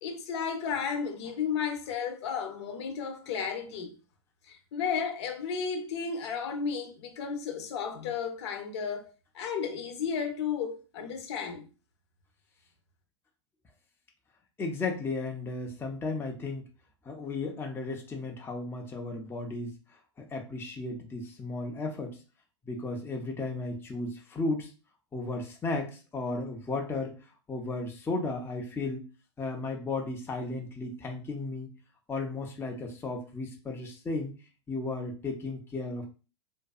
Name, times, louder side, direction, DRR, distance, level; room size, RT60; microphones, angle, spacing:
voice 1, 0.0-3.9 4.4-11.7, left 6 dB, 70° left, 0.7 m, -33 dB
voice 2, 14.6-16.7 17.0-19.7 20.2-22.2 22.6-24.7 25.1-27.1 27.5-29.0 29.4-31.7 32.1-34.3 34.7-36.0, left 3 dB, 15° left, 0.5 m, -34 dB
2.6 x 2.3 x 2.3 m
hypercardioid pair, 100°, 15 cm